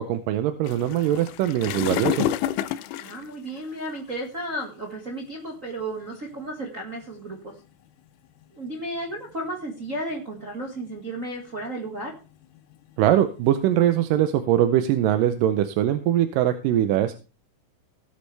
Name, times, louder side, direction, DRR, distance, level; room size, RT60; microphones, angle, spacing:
voice 1, 0.0-2.3 13.0-17.2, right 11 dB, 85° right, 9 dB, 2.4 m, -22 dB
sound 1, 0.6-4.2 4.9-5.1 5.8-5.9 6.2-6.4 7.0-7.5 8.4-9.5 9.9-10.4 10.9-11.2 11.6-14.3, left 12 dB, 80° left, 2.2 m, -31 dB
voice 2, 3.0-7.5 8.5-12.1, right 1 dB, 30° right, 0 dB, 1.7 m, -33 dB
18.0 x 8.4 x 3.4 m, 0.33 s
omnidirectional pair, 3.8 m